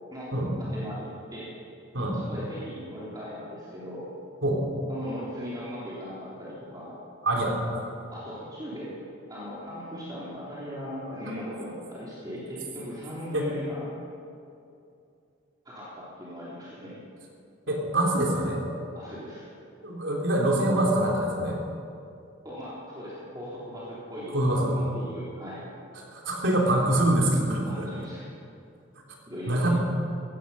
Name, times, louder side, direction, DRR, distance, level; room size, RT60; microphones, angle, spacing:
voice 1, 0.7-1.5 2.1-4.1 4.9-6.9 8.1-9.0 9.3-13.9 15.6-16.9 18.9-19.5 22.4-25.6 27.7-28.2 29.3-29.7, equal, 20° right, -8 dB, 3.2 m, -38 dB
voice 2, 7.2-7.9 13.3-13.5 17.7-18.6 19.8-21.6 24.3-24.8 26.1-27.9 29.5-29.7, right 1 dB, 80° right, -1 dB, 3.4 m, -25 dB
17.0 x 15.0 x 5.6 m, 2.6 s
head